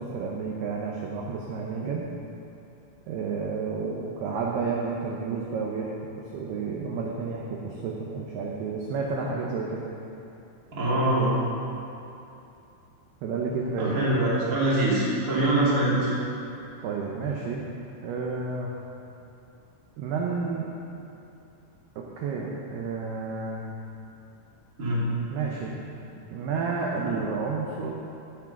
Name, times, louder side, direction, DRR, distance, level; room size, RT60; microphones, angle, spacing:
voice 1, 0.0-2.1 3.1-9.8 13.2-14.0 16.8-17.6 18.0-18.7 20.0-20.8 22.0-23.7 25.3-25.8 26.3-27.9, right 4 dB, 75° right, -2 dB, 2.5 m, -31 dB
voice 2, 10.7-11.3 13.8-16.1 24.8-25.0 27.0-27.1, right 1 dB, 25° right, -8 dB, 2.5 m, -24 dB
15.5 x 6.2 x 5.9 m, 2.8 s
omnidirectional pair, 5.4 m